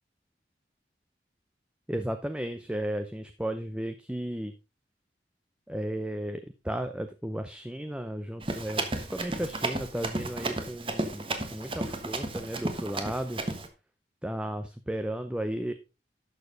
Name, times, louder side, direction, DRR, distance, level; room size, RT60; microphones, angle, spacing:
voice 1, 1.9-4.5 5.7-6.4 6.6-11.2 11.5-13.4 14.2-15.7, right 1 dB, 5° right, 8 dB, 0.6 m, -34 dB
Run, 8.4-13.7, right 2 dB, 30° right, 1.3 m, -33 dB
12.0 x 6.6 x 3.9 m, 0.29 s
head